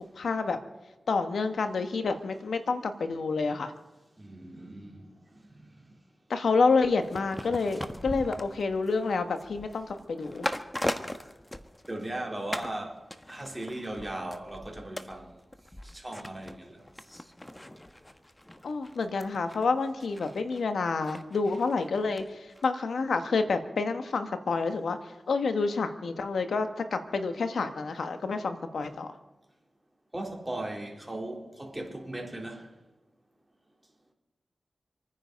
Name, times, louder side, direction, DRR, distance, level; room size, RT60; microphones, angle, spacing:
voice 1, 0.1-0.6 1.1-3.7 6.3-10.5 18.6-25.0 25.3-29.1, left 4 dB, 90° left, 1.4 m, -28 dB
voice 2, 4.2-5.1 5.5-5.7 11.9-13.0 13.3-15.4 15.8-16.8 30.1-32.7, right 1 dB, 20° right, 3.9 m, -38 dB
sound 1, 7.0-12.2 12.5-12.8 13.1-22.2 22.5-22.6, left 1 dB, 15° left, 1.3 m, -40 dB
26.5 x 9.8 x 5.3 m
cardioid pair, 45°, 0 cm